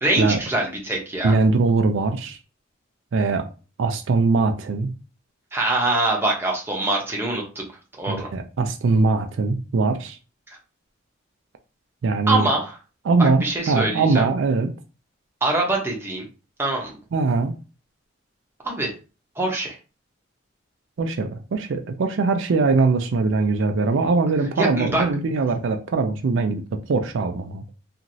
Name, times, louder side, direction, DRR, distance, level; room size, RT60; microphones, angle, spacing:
voice 1, 0.0-1.3 5.5-7.6 8.0-8.3 12.3-12.8 13.2-14.3 15.4-16.2 16.6-17.0 18.6-18.9 19.4-19.7 24.6-25.0, right 2 dB, 10° right, 0.7 m, -24 dB
voice 2, 1.2-2.4 3.1-3.5 3.8-4.9 8.1-10.2 12.0-12.5 13.1-14.7 17.1-17.5 21.0-27.6, right 3 dB, 70° right, 0.4 m, -21 dB
3.0 x 2.4 x 2.6 m
head